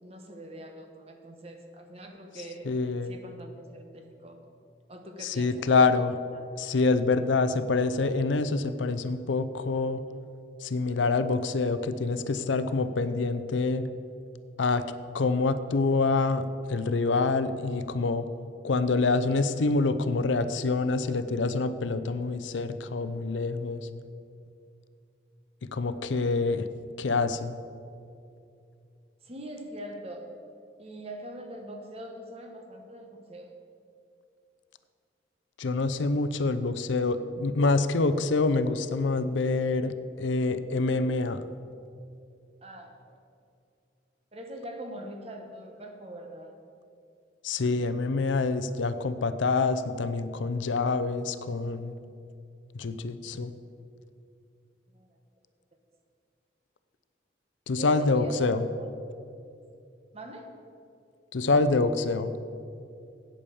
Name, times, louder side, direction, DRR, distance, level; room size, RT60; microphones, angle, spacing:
voice 1, 0.0-2.7 3.0-4.4 4.9-6.0 6.3-6.5 29.2-30.3 30.8-33.6 42.6-43.2 44.3-46.5 54.9-55.2 57.8-58.9 60.1-60.5, right 1 dB, 35° right, 4 dB, 1.1 m, -42 dB
voice 2, 2.7-3.1 5.2-6.2 6.6-10.0 10.6-13.9 14.6-14.8 15.1-16.4 16.7-18.3 18.6-23.9 25.7-26.7 27.0-27.5 35.6-41.4 47.4-51.9 52.7-53.5 57.7-58.6 61.3-62.3, left 3 dB, 90° left, 12 dB, 0.6 m, -26 dB
8.7 x 8.5 x 7.0 m, 2.5 s
head